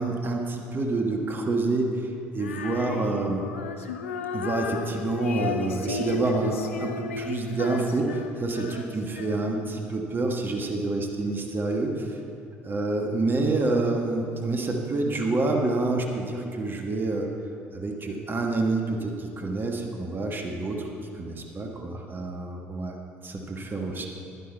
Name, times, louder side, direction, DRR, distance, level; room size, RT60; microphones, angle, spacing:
voice 1, 0.0-1.9 2.3-3.4 4.3-12.2 12.6-17.3 17.7-20.9 21.1-22.9 23.2-24.1, right 2 dB, 30° right, 2 dB, 1.4 m, -27 dB
Female singing, 2.4-9.8, left 6 dB, 80° left, 0.5 m, -34 dB
11.0 x 9.4 x 4.5 m, 2.5 s
figure-of-eight pair, 60°, 7 cm